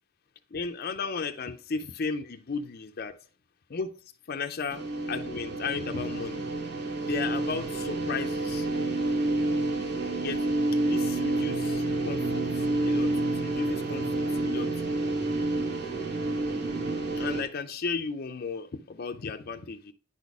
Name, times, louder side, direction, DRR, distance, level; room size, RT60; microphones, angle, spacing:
voice 1, 0.5-3.2 3.7-6.4 7.0-8.7 10.1-10.4 10.8-14.7 17.2-19.9, left 4 dB, 50° left, 0.5 m, -35 dB
sound 1, 4.7-17.4, right 2 dB, 55° right, 1.8 m, -29 dB
10.0 x 4.1 x 4.7 m
head